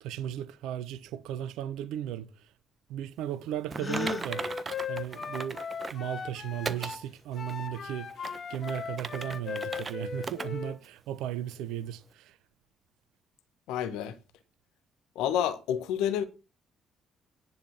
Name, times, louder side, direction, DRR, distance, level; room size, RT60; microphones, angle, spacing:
voice 1, 0.0-2.3 2.9-4.4 4.9-5.6 5.9-12.4, right 11 dB, 65° right, 0.9 m, -36 dB
Gasp, 3.7-4.3, left 3 dB, 25° left, 0.7 m, -34 dB
Typing, 3.7-6.1 6.6-7.0 7.5-7.6 8.1-9.9 10.2-10.5 10.8-10.9 11.5-11.6, right 4 dB, 35° right, 1.2 m, -38 dB
Wind instrument woodwind instrument, 3.8-7.0 7.3-10.8, left 6 dB, 50° left, 1.3 m, -38 dB
voice 2, 13.7-14.1 15.1-16.2, left 9 dB, 70° left, 1.2 m, -29 dB
10.5 x 7.3 x 6.0 m
figure-of-eight pair, 45°, 0 cm